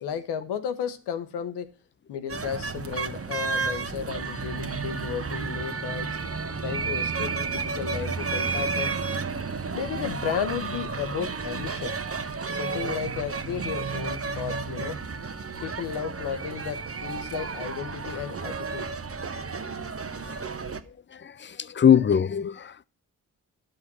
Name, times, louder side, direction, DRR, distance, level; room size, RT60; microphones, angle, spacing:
voice 1, 0.0-1.7 2.1-6.1 6.6-9.0 9.7-11.9 12.5-15.0 15.6-18.9, left 8 dB, 90° left, 1.0 m, -33 dB
sound 1, 2.3-20.8, right 4 dB, 35° right, 1.1 m, -32 dB
voice 2, 21.1-22.8, left 8 dB, 30° left, 0.5 m, -22 dB
10.5 x 6.3 x 6.1 m
supercardioid pair, 45°, 39 cm